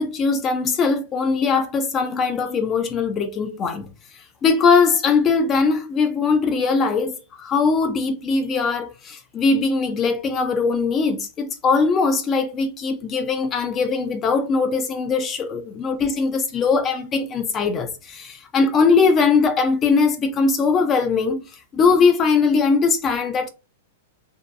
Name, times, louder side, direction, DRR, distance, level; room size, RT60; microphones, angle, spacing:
voice 1, 0.0-3.9 4.4-21.4 21.7-23.5, left 4 dB, 20° left, 0.3 m, -20 dB
2.6 x 2.2 x 2.4 m
supercardioid pair, 165°, 0 cm